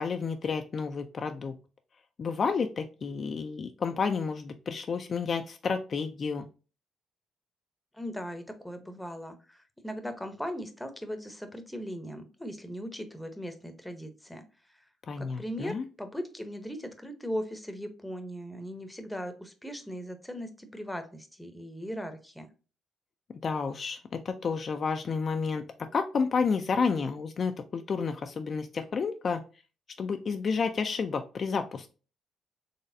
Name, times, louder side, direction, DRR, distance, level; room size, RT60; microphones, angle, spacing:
voice 1, 0.0-1.5 2.2-6.5 15.1-15.9 23.4-29.4 30.0-31.9, left 5 dB, 45° left, 7 dB, 0.4 m, -30 dB
voice 2, 7.9-14.9 15.2-22.5, equal, 5° left, 7 dB, 0.7 m, -39 dB
4.0 x 3.2 x 2.6 m, 0.35 s
cardioid pair, 90°, 0 cm